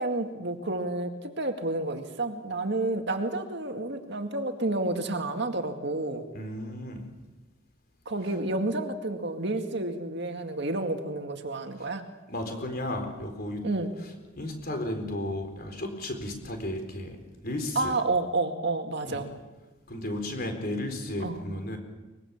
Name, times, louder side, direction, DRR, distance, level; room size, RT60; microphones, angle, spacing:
voice 1, 0.0-6.3 8.1-12.1 13.6-13.9 17.8-19.3 21.2-21.4, right 2 dB, 55° right, 5 dB, 2.1 m, -30 dB
voice 2, 6.3-7.0 12.3-13.6 14.4-17.2 17.4-17.9 19.0-19.2 19.9-21.8, left 1 dB, 45° left, 5 dB, 4.2 m, -34 dB
23.5 x 21.5 x 7.2 m, 1.2 s
head